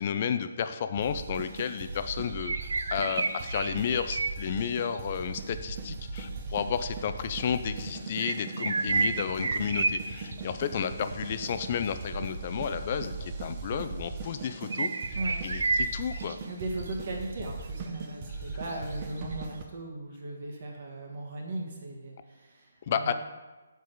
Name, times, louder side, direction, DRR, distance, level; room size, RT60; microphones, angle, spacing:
voice 1, 0.0-15.2 15.4-16.4 22.9-23.1, left 7 dB, 40° left, 10 dB, 0.4 m, -32 dB
sound 1, 1.0-19.6, right 3 dB, 30° right, 0.8 m, -39 dB
sound 2, 1.6-1.8 2.1-5.0 6.8-6.9 8.2-10.4 14.5-16.4 16.8-16.9 17.4-17.5 17.6-17.7 18.0-18.1 18.7-19.4, right 3 dB, 80° right, 0.4 m, -31 dB
voice 2, 16.4-23.1, right 2 dB, 50° right, 0 dB, 1.4 m, -38 dB
7.1 x 4.7 x 4.6 m, 1.2 s
hypercardioid pair, 160°, 0 cm